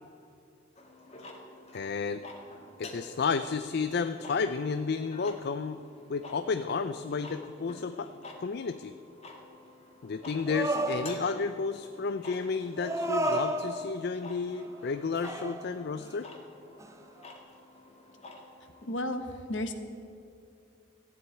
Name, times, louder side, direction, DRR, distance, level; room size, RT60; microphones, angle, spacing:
sound 1, 0.8-19.1, left 2 dB, 35° left, 1.9 m, -49 dB
voice 1, 1.7-2.2 2.8-5.8 6.1-8.1 8.4-8.9 10.0-16.3, left 5 dB, 55° left, 10 dB, 0.4 m, -32 dB
sound 2, 10.5-11.5 12.8-14.1 14.6-15.0 15.2-16.1 16.8-16.9, right 1 dB, 15° right, 0.6 m, -32 dB
voice 2, 18.9-19.7, left 1 dB, 70° left, 8 dB, 1.3 m, -33 dB
15.0 x 7.9 x 9.7 m, 2.6 s
head